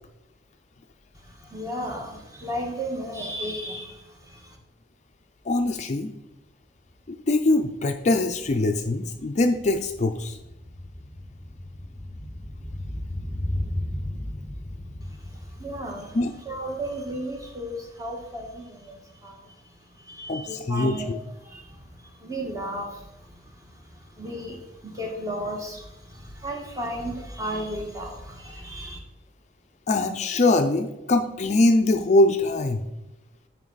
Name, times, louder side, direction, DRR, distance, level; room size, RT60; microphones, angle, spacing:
voice 1, 1.1-4.6 15.0-16.2 16.4-21.1 21.4-29.0, right 1 dB, 20° right, 1 dB, 1.3 m, -35 dB
voice 2, 5.5-6.1 7.1-10.4 16.1-16.3 20.3-21.2 29.9-32.8, left 2 dB, 40° left, 7 dB, 0.4 m, -22 dB
sound 1, 7.0-7.1 7.4-17.7 18.0-18.1, left 1 dB, 15° left, 1.0 m, -36 dB
9.2 x 4.7 x 4.0 m, 0.96 s
head